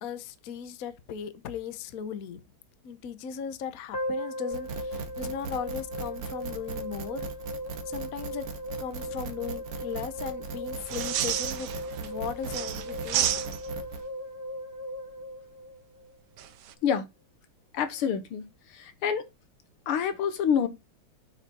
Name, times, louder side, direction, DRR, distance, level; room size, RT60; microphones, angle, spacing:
voice 1, 0.0-2.4 2.8-7.3 7.9-8.4 8.8-11.7 12.0-13.4, left 8 dB, 55° left, 1.1 m, -37 dB
sound 1, 3.9-16.2, left 1 dB, 30° left, 1.5 m, -37 dB
sound 2, 4.5-14.0, right 5 dB, 80° right, 2.1 m, -39 dB
sound 3, 10.8-12.1 12.4-13.9 16.4-16.7, right 11 dB, 65° right, 1.1 m, -31 dB
voice 2, 17.7-18.4 18.7-19.2 19.9-20.7, left 7 dB, 75° left, 2.0 m, -27 dB
8.0 x 5.6 x 4.2 m
omnidirectional pair, 2.4 m